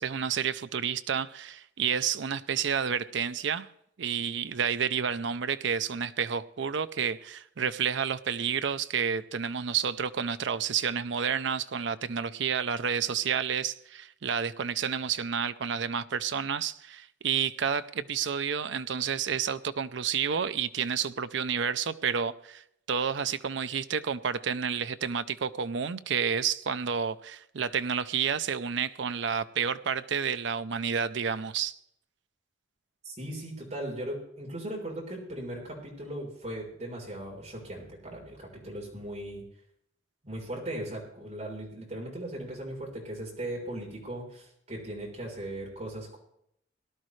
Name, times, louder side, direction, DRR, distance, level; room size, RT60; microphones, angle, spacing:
voice 1, 0.0-3.7 4.0-31.8, right 7 dB, 65° right, 0.5 m, -30 dB
voice 2, 33.0-39.4 40.2-46.2, right 1 dB, 35° right, 3.8 m, -38 dB
18.0 x 12.0 x 3.2 m
head